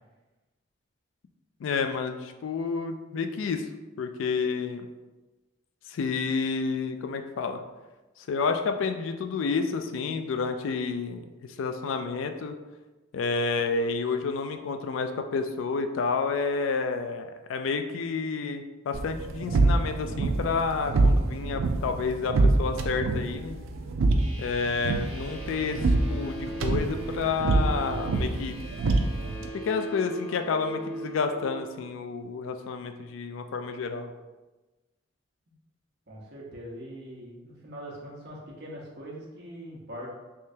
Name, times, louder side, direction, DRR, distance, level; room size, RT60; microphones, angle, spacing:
voice 1, 1.6-3.7 4.0-4.9 5.9-7.6 8.2-11.3 11.6-12.6 13.1-23.6 24.4-28.5 29.6-34.1, left 4 dB, 70° left, 7 dB, 0.3 m, -30 dB
sound 1, 18.9-29.5, right 2 dB, 90° right, 0.4 m, -26 dB
sound 2, 24.2-31.6, right 1 dB, 30° right, 1.3 m, -40 dB
voice 2, 36.1-40.1, equal, 55° right, -4 dB, 1.0 m, -42 dB
3.5 x 3.2 x 2.7 m, 1.2 s
head